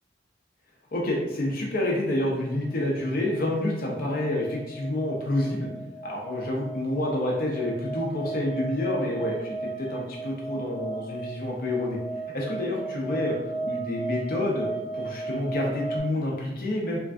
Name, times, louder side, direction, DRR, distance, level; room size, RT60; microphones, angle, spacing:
voice 1, 0.9-5.7 6.0-12.0 12.3-13.4 13.6-14.7 14.9-17.0, left 1 dB, 50° left, -2 dB, 0.4 m, -28 dB
sound 1, 2.6-16.0, right 3 dB, ahead, 0.5 m, -36 dB
3.1 x 2.5 x 2.2 m, 0.97 s
head